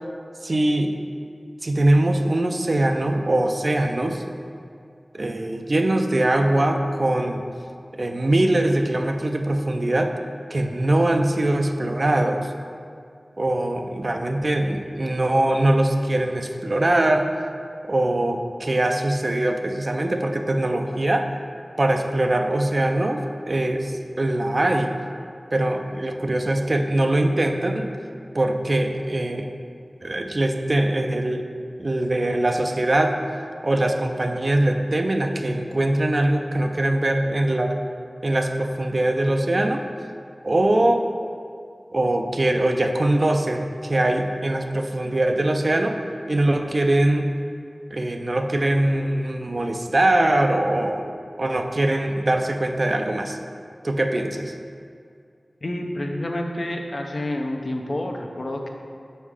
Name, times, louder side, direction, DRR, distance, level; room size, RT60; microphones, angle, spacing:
voice 1, 0.4-0.9 1.6-4.2 5.1-7.4 7.9-10.1 10.5-12.5 13.4-17.3 17.9-21.3 21.8-23.2 23.5-24.9 25.5-27.9 28.3-29.5 30.0-31.4 31.8-33.1 33.6-37.8 38.2-39.8 40.4-41.0 41.9-46.0 46.3-47.3 47.9-51.1 51.4-53.4 53.8-54.5, right 1 dB, 55° right, 4 dB, 0.5 m, -22 dB
voice 2, 55.6-58.7, left 1 dB, 60° left, 2 dB, 0.7 m, -28 dB
5.5 x 4.5 x 4.8 m, 2.3 s
wide cardioid pair, 50°, 0 cm